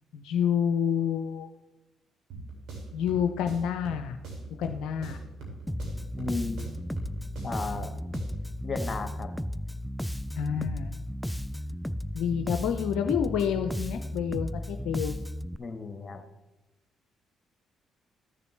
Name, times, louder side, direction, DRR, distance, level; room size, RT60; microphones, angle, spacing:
voice 1, 0.1-1.5 2.9-4.2 4.6-5.2 10.4-10.9 12.1-15.2, left 8 dB, 75° left, 7 dB, 0.4 m, -28 dB
sound 1, 2.3-8.5, right 2 dB, 65° right, 2.7 m, -42 dB
Bass guitar, 5.7-15.6, equal, 5° left, 0.3 m, -34 dB
voice 2, 6.2-6.6 7.4-7.9 8.6-9.3 15.6-16.2, left 4 dB, 35° left, 7 dB, 1.3 m, -34 dB
14.0 x 6.8 x 3.2 m, 1.0 s
hypercardioid pair, 50°, 0 cm